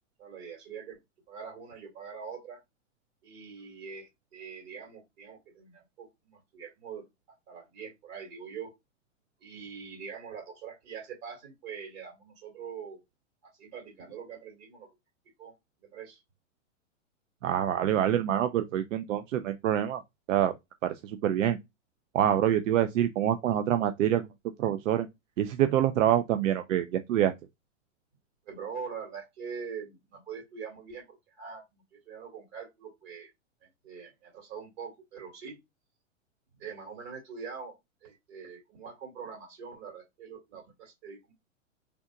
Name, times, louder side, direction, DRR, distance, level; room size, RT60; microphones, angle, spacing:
voice 1, 0.2-1.0 1.3-2.6 3.2-7.0 7.5-8.7 9.4-13.0 13.4-14.9 15.4-15.5 15.8-16.2 28.5-33.3 33.6-35.6 36.6-37.8 38.0-41.3, right 6 dB, 50° right, 2.2 m, -43 dB
voice 2, 17.4-20.0 20.3-20.5 20.8-21.6 22.1-24.3 24.6-25.1 25.4-27.3, right 11 dB, 80° right, 0.5 m, -26 dB
3.4 x 2.8 x 2.5 m
hypercardioid pair, 120°, 38 cm